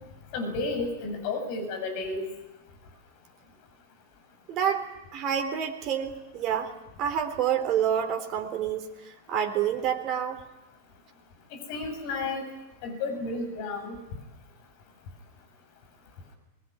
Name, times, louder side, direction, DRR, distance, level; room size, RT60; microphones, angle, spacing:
voice 1, 0.3-2.3 11.7-12.5 12.8-14.0, left 3 dB, 45° left, 6 dB, 7.4 m, -32 dB
voice 2, 4.5-6.7 7.0-10.4, right 9 dB, 35° right, 6 dB, 3.6 m, -28 dB
24.5 x 21.0 x 9.7 m, 0.98 s
figure-of-eight pair, 90°, 0 cm